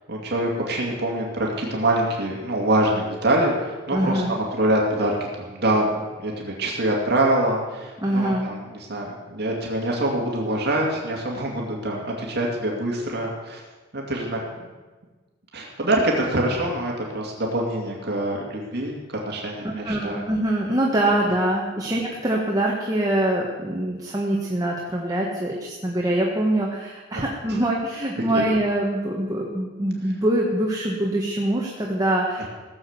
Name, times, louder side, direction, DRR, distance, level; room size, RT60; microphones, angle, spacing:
voice 1, 0.1-5.2 5.5-13.6 13.9-14.7 15.5-19.0 19.2-20.2 27.1-27.3 28.3-28.4, right 1 dB, 60° right, -1 dB, 2.5 m, -25 dB
voice 2, 3.9-4.4 8.0-8.5 19.6-32.5, right 1 dB, 20° right, -2 dB, 1.5 m, -24 dB
17.0 x 7.4 x 8.0 m, 1.3 s
head